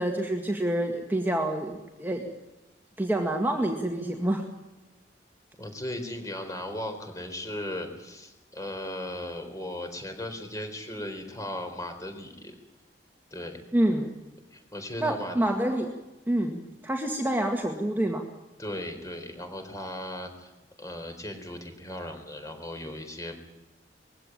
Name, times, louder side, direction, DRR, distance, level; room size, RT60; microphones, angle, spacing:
voice 1, 0.0-2.3 3.0-4.4 13.7-14.1 15.0-15.9 16.3-16.6 16.8-18.2, right 1 dB, 10° right, 2 dB, 1.9 m, -27 dB
voice 2, 5.6-12.6 13.3-13.6 14.5-15.4 18.6-20.5 20.8-23.4, left 1 dB, 20° left, 6 dB, 4.0 m, -37 dB
21.0 x 16.0 x 9.2 m, 1.0 s
head